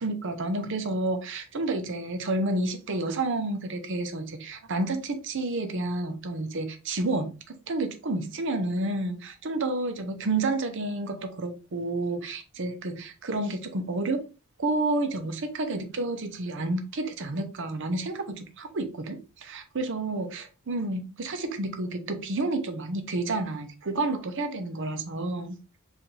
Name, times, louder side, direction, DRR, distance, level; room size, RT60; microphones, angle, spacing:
voice 1, 0.0-14.3 14.6-25.6, right 2 dB, 55° right, 0.6 m, -30 dB
4.7 x 2.5 x 3.2 m
head